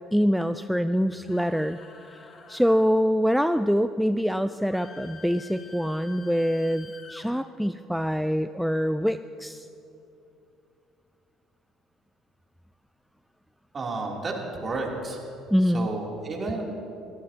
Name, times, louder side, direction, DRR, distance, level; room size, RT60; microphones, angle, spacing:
voice 1, 0.1-1.8 2.5-9.7 15.5-15.9, equal, ahead, 11 dB, 0.4 m, -24 dB
sound 1, 1.2-2.9 4.7-7.3, left 5 dB, 45° left, 1.5 m, -48 dB
voice 2, 13.7-15.2 15.7-16.6, right 3 dB, 35° right, -1 dB, 3.1 m, -31 dB
21.5 x 15.0 x 2.9 m, 2.7 s
supercardioid pair, 70°, 0 cm